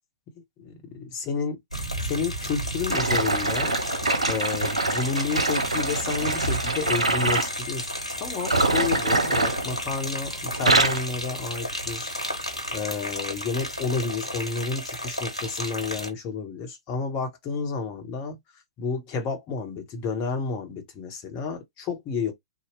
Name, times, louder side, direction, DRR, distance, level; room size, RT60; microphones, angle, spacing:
voice 1, 0.6-1.5 2.0-3.8 4.3-12.1 12.7-18.4 18.8-22.3, left 5 dB, 30° left, 1.1 m, -31 dB
sound 1, 1.7-16.1, equal, 85° left, 1.1 m, -33 dB
sound 2, 2.9-7.5 8.4-10.2 10.5-11.1 11.7-11.9 12.6-12.7, right 2 dB, 80° right, 0.7 m, -25 dB
2.8 x 2.3 x 3.2 m
figure-of-eight pair, 110°, 3 cm